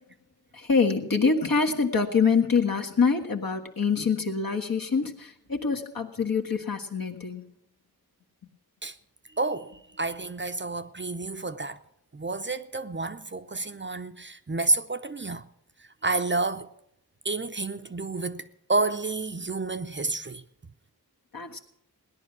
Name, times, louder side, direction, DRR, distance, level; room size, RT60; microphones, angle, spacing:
voice 1, 0.5-7.4 21.3-21.6, left 5 dB, 65° left, 1.5 m, -25 dB
voice 2, 9.4-11.8 12.1-15.4 16.0-16.7 17.2-20.4, right 3 dB, 30° right, 0.6 m, -30 dB
17.0 x 10.5 x 6.1 m
wide cardioid pair, 50°, 38 cm